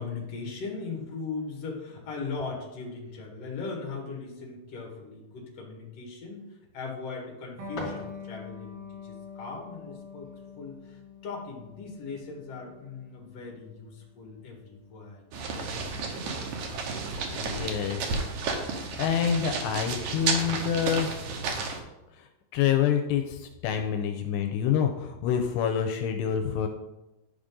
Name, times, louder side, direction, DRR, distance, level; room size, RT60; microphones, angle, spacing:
voice 1, 0.0-6.5 6.7-10.3 10.6-15.2, left 4 dB, 50° left, -1 dB, 2.3 m, -39 dB
sound 1, 7.2-8.7, left 1 dB, 35° left, 4.0 m, -42 dB
Electric guitar, 7.6-14.7, left 5 dB, 65° right, 3.5 m, -45 dB
sound 2, 15.3-21.8, right 4 dB, 90° right, 1.7 m, -32 dB
voice 2, 17.3-18.0 19.0-21.1 22.5-26.7, left 8 dB, 85° left, 5 dB, 2.6 m, -27 dB
11.5 x 5.2 x 3.7 m, 0.97 s
omnidirectional pair, 4.8 m